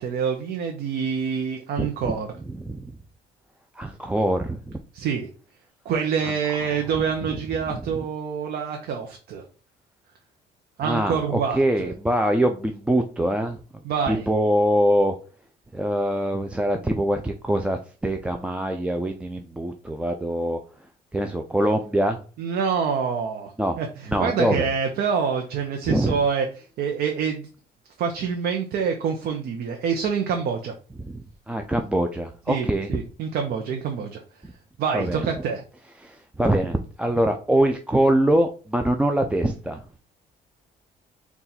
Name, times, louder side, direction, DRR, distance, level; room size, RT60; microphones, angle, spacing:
voice 1, 0.0-2.3 4.9-5.3 5.9-9.4 10.8-11.9 13.8-14.2 22.4-23.5 23.8-23.9 24.2-26.5 26.8-27.5 28.0-30.7 32.5-34.2 34.8-35.6, right 6 dB, 65° right, 4 dB, 0.6 m, -26 dB
voice 2, 1.8-2.1 2.4-2.9 3.7-4.8 6.2-6.3 7.2-7.4 7.7-7.8 10.8-13.6 14.1-15.1 15.7-20.6 21.1-22.2 23.6-23.8 24.1-24.7 25.9-26.2 31.0-31.2 31.5-33.0 34.9-35.3 36.0-39.8, right 1 dB, 5° right, 4 dB, 0.3 m, -24 dB
4.1 x 2.4 x 3.9 m, 0.38 s
cardioid pair, 110°, 17 cm